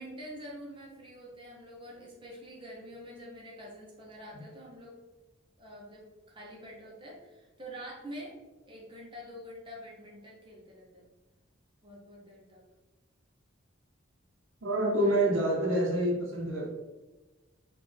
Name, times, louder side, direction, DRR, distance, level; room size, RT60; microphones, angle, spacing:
voice 1, 0.0-5.0 5.6-8.4 8.7-11.1 11.8-12.7 14.8-15.1, equal, 25° right, -3 dB, 0.9 m, -46 dB
voice 2, 14.6-16.7, right 1 dB, 70° right, -2 dB, 1.0 m, -27 dB
3.9 x 2.6 x 3.4 m, 1.1 s
head